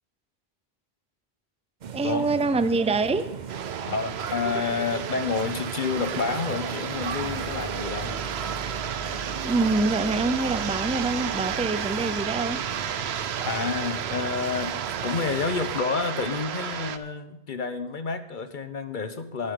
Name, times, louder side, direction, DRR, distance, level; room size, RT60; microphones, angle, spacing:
sound 1, 1.8-15.8, right 7 dB, 50° right, 0.8 m, -39 dB
voice 1, 1.9-3.3 9.4-12.6, right 3 dB, 10° right, 12 dB, 0.4 m, -25 dB
sound 2, 3.5-17.0, right 8 dB, 85° right, 1.0 m, -32 dB
voice 2, 3.9-8.2 13.4-19.5, left 5 dB, 50° left, 10 dB, 1.1 m, -29 dB
sound 3, 7.0-13.1, right 2 dB, 35° right, 5.4 m, -41 dB
21.5 x 8.6 x 3.8 m, 0.92 s
omnidirectional pair, 1.1 m